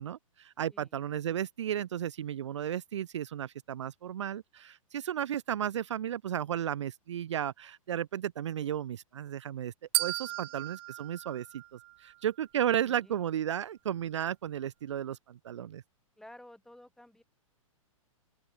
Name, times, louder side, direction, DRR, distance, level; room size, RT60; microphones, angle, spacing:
voice 1, 0.0-9.7 10.0-15.8, right 10 dB, 55° right, 1.1 m, -34 dB
sound 1, 9.9-12.2, right 20 dB, 40° right, 1.6 m, -35 dB
voice 2, 10.3-10.6 12.9-13.2 16.2-17.2, left 1 dB, ahead, 5.9 m, -54 dB
open air
figure-of-eight pair, 110°, 18 cm